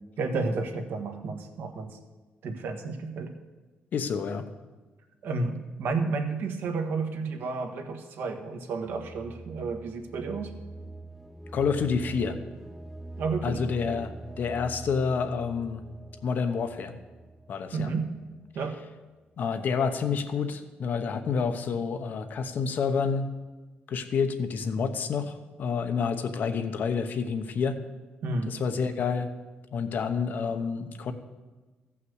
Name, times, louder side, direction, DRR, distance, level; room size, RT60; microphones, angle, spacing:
voice 1, 0.2-2.0 2.4-3.3 5.2-10.5 13.2-13.6 17.7-18.1 18.5-18.7 28.2-28.6, right 4 dB, 70° right, 5 dB, 1.5 m, -31 dB
voice 2, 3.9-4.4 11.5-12.4 13.4-15.8 16.2-16.9 17.5-17.9 19.4-23.3 23.9-27.8 28.5-29.3 29.7-31.1, left 5 dB, 50° left, 8 dB, 0.9 m, -28 dB
sound 1, 8.9-18.7, right 2 dB, ahead, 0.3 m, -44 dB
15.0 x 5.9 x 8.0 m, 1.2 s
cardioid pair, 165°, 4 cm